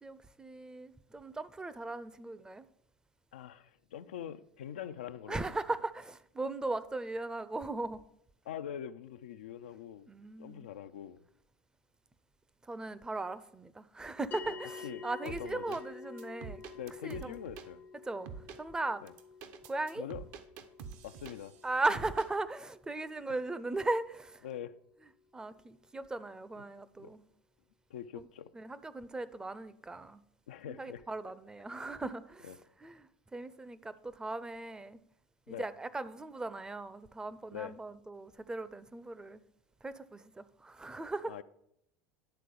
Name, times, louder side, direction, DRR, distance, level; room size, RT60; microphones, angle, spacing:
voice 1, 0.0-2.7 5.3-8.0 10.1-10.7 12.7-16.6 17.0-17.3 18.0-18.3 18.5-19.0 19.6-20.1 21.6-24.4 25.3-27.3 28.2-28.3 28.5-30.2 30.7-32.5 32.8-35.0 35.5-39.4 39.8-41.3, right 2 dB, 15° right, 0.5 m, -38 dB
voice 2, 3.3-5.5 8.5-10.1 10.4-11.2 14.5-14.6 14.8-15.8 16.7-17.8 19.0-19.1 20.0-20.2 21.0-21.5 24.4-24.8 26.6-26.7 27.0-27.1 27.9-28.5 30.5-31.0 32.4-32.6 35.5-35.7 37.5-37.7 41.3-41.4, left 9 dB, 90° left, 0.4 m, -43 dB
sound 1, 14.3-24.9, left 6 dB, 40° left, 0.6 m, -51 dB
sound 2, 15.2-15.8 16.2-17.7 18.3-18.6 19.1-21.6 21.9-22.3, right 6 dB, 65° right, 0.8 m, -46 dB
10.5 x 3.7 x 6.8 m
hypercardioid pair, 95°, 6 cm